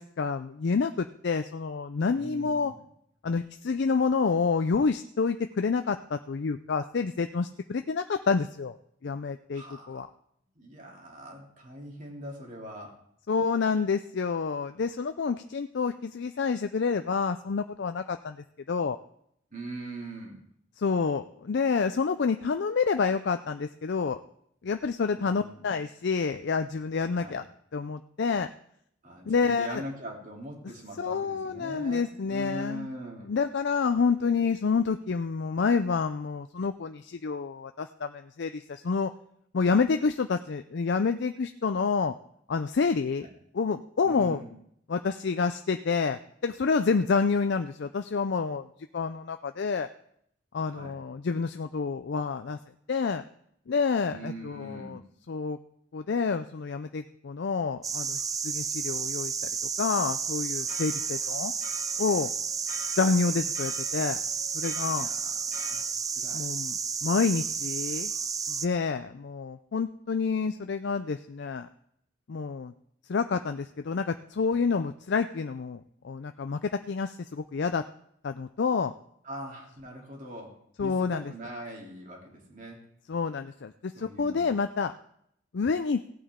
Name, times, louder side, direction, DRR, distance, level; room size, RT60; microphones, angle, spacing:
voice 1, 0.0-2.7 3.2-8.8 9.0-10.1 13.3-19.0 20.8-24.2 24.6-27.4 27.7-28.5 29.3-29.8 31.0-32.9 33.2-39.1 39.5-42.1 42.5-43.3 43.5-44.4 44.9-48.7 48.9-49.9 50.5-52.6 52.9-53.2 53.7-55.0 55.3-55.6 55.9-59.5 59.8-61.5 62.0-62.3 63.0-64.2 64.5-65.1 66.3-68.1 68.5-71.7 72.3-72.7 73.1-77.8 78.2-78.9 80.8-81.3 83.1-84.9 85.5-86.0, left 5 dB, 60° left, 8 dB, 0.4 m, -28 dB
voice 2, 2.2-2.8 9.5-10.0 10.5-12.9 19.5-20.4 25.2-25.6 27.2-27.4 29.0-33.3 43.2-43.3 44.0-44.5 50.7-51.0 54.0-55.0 64.8-65.8 66.1-66.4 79.2-82.8 83.9-84.5, right 1 dB, 40° right, -1 dB, 3.0 m, -42 dB
sound 1, 57.8-68.7, right 6 dB, 20° right, 0.4 m, -32 dB
sound 2, 60.6-65.8, left 5 dB, 45° left, 1.2 m, -47 dB
17.0 x 8.6 x 3.7 m, 0.69 s
head